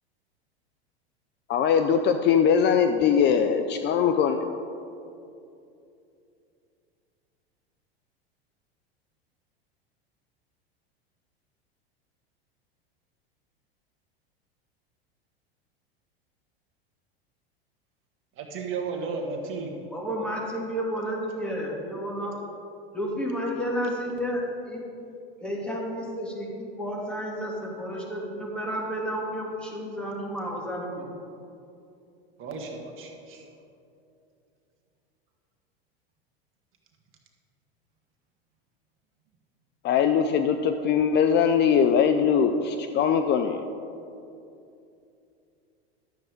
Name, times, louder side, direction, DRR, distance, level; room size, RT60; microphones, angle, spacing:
voice 1, 1.5-4.4 39.8-43.7, left 7 dB, 35° left, 8 dB, 0.5 m, -21 dB
voice 2, 18.3-19.7 32.4-33.5, right 4 dB, 40° right, 2 dB, 1.7 m, -34 dB
voice 3, 19.9-22.4 22.9-24.8 25.4-31.1, equal, 5° left, -4 dB, 2.6 m, -31 dB
12.0 x 7.6 x 5.1 m, 2.7 s
hypercardioid pair, 90°, 31 cm